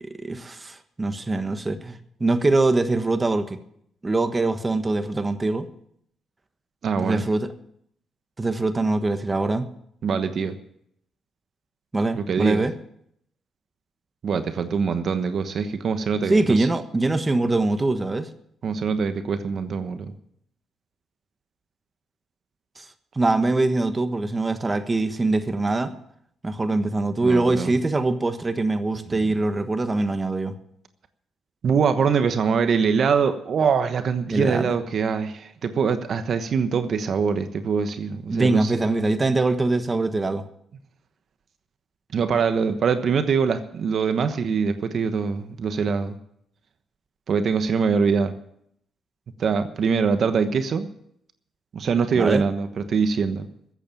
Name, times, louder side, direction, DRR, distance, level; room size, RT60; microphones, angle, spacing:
voice 1, 0.0-3.6 4.0-5.7 7.0-7.5 8.4-9.7 11.9-12.7 16.3-18.3 22.8-22.9 23.1-25.9 26.4-30.5 34.3-34.7 38.3-40.4 52.1-52.4, right 2 dB, 20° right, 9 dB, 1.3 m, -23 dB
voice 2, 6.8-7.2 10.0-10.6 12.2-12.6 14.2-16.7 18.6-20.1 27.2-27.7 29.1-29.2 31.6-39.0 42.1-46.2 47.3-48.3 49.4-50.9 51.7-53.5, right 6 dB, 55° right, 9 dB, 1.1 m, -23 dB
14.0 x 8.4 x 9.0 m, 0.72 s
cardioid pair, 90°, 0 cm